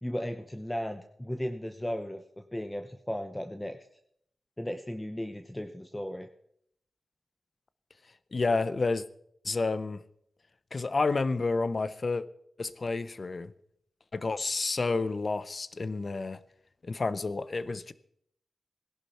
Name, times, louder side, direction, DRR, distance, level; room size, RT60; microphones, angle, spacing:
voice 1, 0.0-3.8 4.6-6.3, equal, 10° left, 7 dB, 0.9 m, -36 dB
voice 2, 8.3-9.0 9.4-10.0 10.7-12.3 12.6-13.5 14.1-16.4 16.8-17.9, left 3 dB, 45° left, 16 dB, 0.7 m, -30 dB
17.5 x 11.0 x 4.4 m, 0.69 s
cardioid pair, 75°, 0 cm